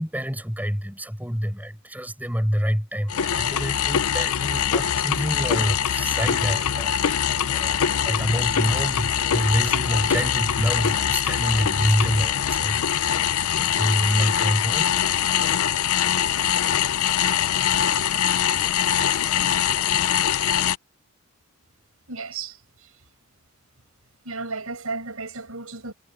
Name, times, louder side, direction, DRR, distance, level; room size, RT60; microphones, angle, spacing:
voice 1, 0.0-13.3 13.5-14.9, equal, 10° right, 4.7 m, -27 dB
sound 1, 3.1-20.8, left 9 dB, 85° left, 0.6 m, -23 dB
voice 2, 22.1-23.1 24.2-25.9, right 4 dB, 80° right, 5.2 m, -34 dB
head